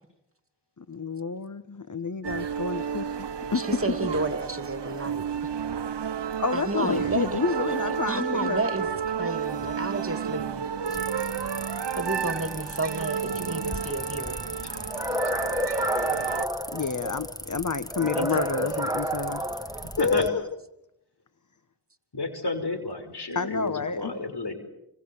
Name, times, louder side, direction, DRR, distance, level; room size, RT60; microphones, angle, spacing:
voice 1, 0.8-4.0 6.4-8.6 16.7-19.5 20.0-20.4 23.3-24.1, left 5 dB, 45° left, 12 dB, 1.3 m, -29 dB
sound 1, 2.2-16.5, right 7 dB, 85° right, 0.9 m, -31 dB
voice 2, 3.5-5.2 6.5-7.4 8.1-8.9 9.2-10.6 12.0-14.3 18.0-18.8, right 2 dB, 30° right, 8 dB, 2.9 m, -31 dB
sound 2, 10.9-20.3, left 1 dB, 10° left, 1.6 m, -39 dB
sound 3, 14.9-17.3 17.9-20.3, equal, 10° right, 1.9 m, -30 dB
voice 3, 19.8-20.3 22.1-24.5, left 2 dB, 70° left, 8 dB, 5.8 m, -30 dB
28.5 x 26.5 x 7.3 m, 0.87 s
cardioid pair, 45°, 41 cm